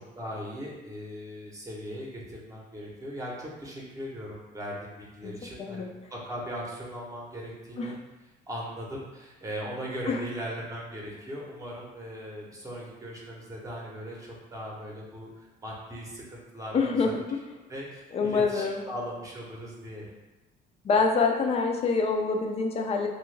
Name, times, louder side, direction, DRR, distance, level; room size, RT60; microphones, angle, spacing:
voice 1, 0.2-7.9 8.5-17.1 17.7-20.1, equal, 20° right, -3 dB, 0.8 m, -39 dB
voice 2, 16.7-17.2 18.1-18.8 20.8-23.1, left 4 dB, 35° left, 3 dB, 0.4 m, -25 dB
3.1 x 2.2 x 3.2 m, 1.1 s
cardioid pair, 110°, 17 cm